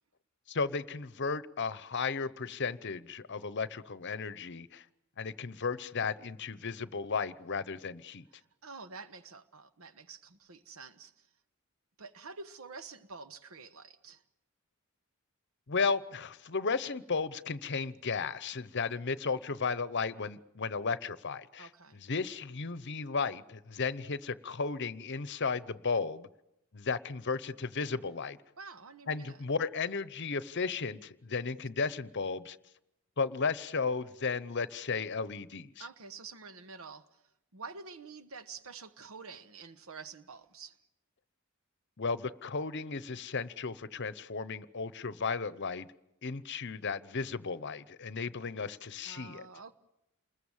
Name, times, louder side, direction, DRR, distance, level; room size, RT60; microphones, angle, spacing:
voice 1, 0.5-4.8 5.2-8.2 15.7-21.7 22.0-26.3 26.7-28.4 29.1-32.6 33.2-35.9 42.0-45.9 46.2-49.5, left 4 dB, 55° left, 0.9 m, -34 dB
voice 2, 8.6-11.3 12.0-14.2 21.6-22.0 28.6-29.4 35.8-37.2 37.5-40.8 49.0-49.7, right 4 dB, 75° right, 1.2 m, -48 dB
28.5 x 21.0 x 7.3 m
head